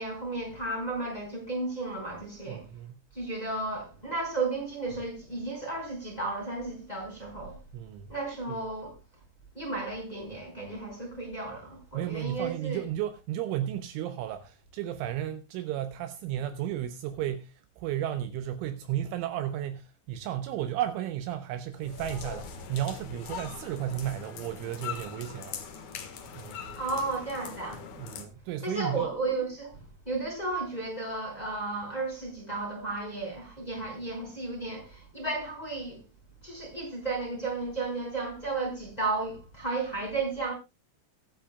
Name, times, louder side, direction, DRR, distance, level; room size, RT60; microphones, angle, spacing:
voice 1, 0.0-2.7 3.1-7.6 8.1-9.0 9.5-12.8 26.7-27.8 28.6-36.0 36.4-40.5, right 3 dB, 10° left, 4.7 m, -33 dB
voice 2, 2.5-3.0 7.7-8.1 8.5-8.6 11.9-25.6 26.4-26.6 28.0-29.1, right 11 dB, 80° right, 3.1 m, -33 dB
Inverness After Hours, 21.7-28.2, left 6 dB, 85° left, 1.7 m, -41 dB
22.5 x 8.8 x 2.2 m
omnidirectional pair, 6.0 m